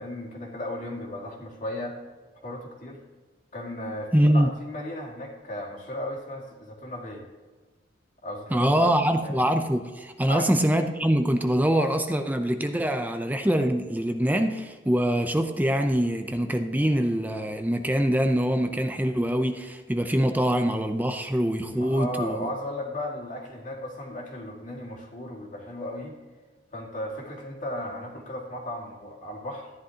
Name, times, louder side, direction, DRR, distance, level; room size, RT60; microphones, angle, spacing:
voice 1, 0.0-2.0 2.4-3.0 3.5-7.2 8.2-8.9 9.2-9.3 10.3-10.5 21.7-26.1 26.7-29.7, left 1 dB, 45° left, -1 dB, 2.3 m, -35 dB
voice 2, 4.1-4.5 8.5-22.5, equal, 10° right, 6 dB, 0.6 m, -24 dB
14.0 x 10.5 x 2.9 m, 1.3 s
head